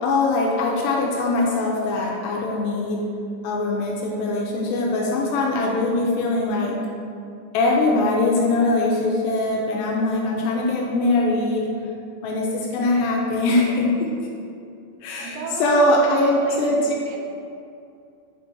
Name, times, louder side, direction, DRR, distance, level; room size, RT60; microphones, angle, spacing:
voice 1, 0.0-3.0 3.4-6.8 7.5-11.7 12.2-14.1 15.0-16.9, left 2 dB, 85° left, -2 dB, 2.4 m, -22 dB
voice 2, 15.2-15.9 16.2-17.2, right 4 dB, 80° right, 0 dB, 2.4 m, -35 dB
6.1 x 4.3 x 4.0 m, 2.5 s
omnidirectional pair, 4.2 m